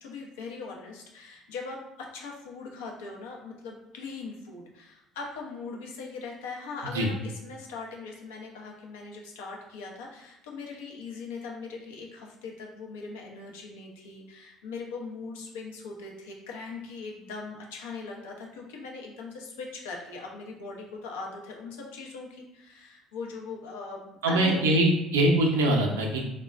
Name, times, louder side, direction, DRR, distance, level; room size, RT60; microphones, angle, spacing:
voice 1, 0.0-24.8, left 4 dB, 80° left, -1 dB, 0.5 m, -40 dB
voice 2, 24.2-26.2, right 1 dB, 85° right, 0 dB, 0.5 m, -23 dB
3.2 x 2.1 x 2.4 m, 0.88 s
hypercardioid pair, 60°, 0 cm